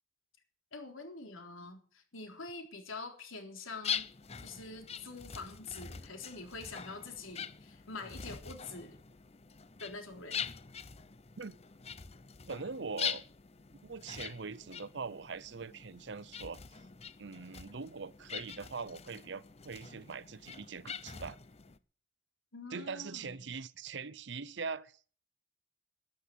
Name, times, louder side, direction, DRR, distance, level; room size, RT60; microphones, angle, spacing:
voice 1, 0.7-4.0 4.4-9.0 9.8-10.4 22.5-23.4, left 3 dB, 85° left, 3.7 m, -45 dB
sound 1, 3.8-21.8, left 7 dB, 30° left, 0.7 m, -43 dB
voice 2, 12.5-13.2 13.8-16.8 17.2-21.4 22.7-25.0, right 5 dB, 60° right, 0.7 m, -42 dB
12.5 x 10.5 x 8.1 m
head